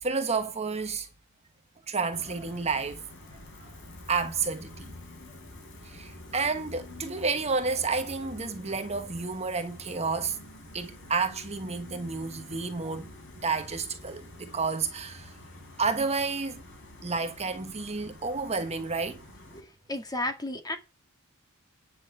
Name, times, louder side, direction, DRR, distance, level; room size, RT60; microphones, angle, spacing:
voice 1, 0.0-1.1 1.9-3.0 3.6-3.7 4.1-4.9 5.8-10.4 10.7-13.1 13.4-15.3 15.8-16.6 17.0-19.2, right 4 dB, 30° right, 1.2 m, -30 dB
Gull seagull, 2.1-19.6, left 2 dB, 60° left, 4.1 m, -48 dB
voice 2, 19.5-20.8, left 1 dB, 20° left, 2.0 m, -33 dB
10.5 x 6.3 x 8.1 m
head